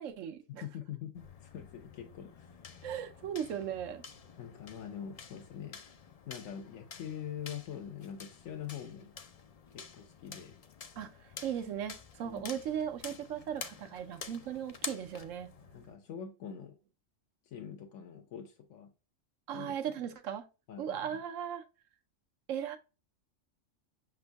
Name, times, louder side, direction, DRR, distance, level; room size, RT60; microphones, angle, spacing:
voice 1, 0.0-0.6 2.8-4.0 11.0-11.1 11.4-15.5 19.5-20.5 20.8-21.6 22.5-22.8, right 9 dB, 75° right, 1.1 m, -37 dB
voice 2, 0.6-2.6 4.4-5.8 6.3-9.1 9.7-10.5 12.2-12.5 15.7-16.7 17.5-18.9 19.5-19.7 20.7-21.2, left 9 dB, 85° left, 1.1 m, -44 dB
sound 1, 1.2-15.9, left 5 dB, 55° left, 0.4 m, -49 dB
6.0 x 3.6 x 2.2 m
omnidirectional pair, 1.3 m